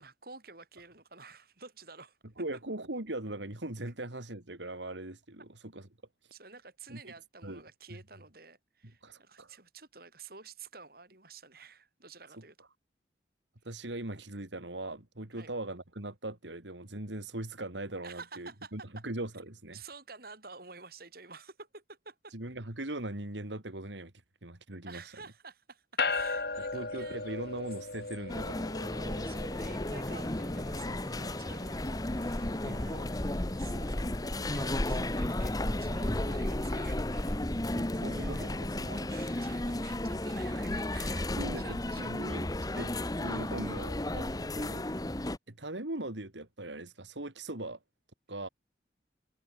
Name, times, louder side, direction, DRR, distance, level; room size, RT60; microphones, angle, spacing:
voice 1, 0.0-2.2 6.3-12.6 15.3-15.5 18.0-19.0 19.7-22.3 24.8-27.6 28.8-33.1 33.5-34.0 34.4-41.3 41.5-42.1, right 4 dB, 55° right, 5.9 m, -51 dB
voice 2, 2.4-5.9 6.2-6.3 6.9-7.1 7.4-7.6 9.0-9.6 13.6-19.8 22.3-24.1 24.4-25.0 26.7-28.7 32.7-33.1 33.7-33.8 35.6-36.0 37.8-39.4 41.4-42.5 42.7-42.9 43.2-44.8 45.5-47.8 48.3-48.5, right 1 dB, 80° right, 3.1 m, -40 dB
sound 1, 26.0-37.6, left 4 dB, 60° left, 2.7 m, -40 dB
sound 2, 28.3-45.4, left 1 dB, 20° left, 1.0 m, -33 dB
head